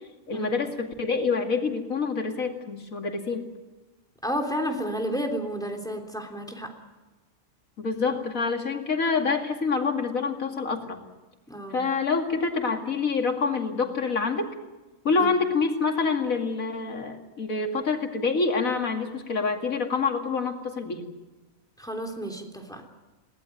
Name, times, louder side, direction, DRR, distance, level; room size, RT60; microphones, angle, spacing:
voice 1, 0.3-3.5 7.8-11.0 11.7-14.5 15.0-21.0, left 4 dB, 85° left, 4 dB, 2.8 m, -26 dB
voice 2, 4.2-6.7 11.5-11.8 15.1-15.3 21.8-22.8, equal, 5° left, 3 dB, 3.3 m, -31 dB
22.0 x 18.0 x 9.3 m, 1.2 s
omnidirectional pair, 1.4 m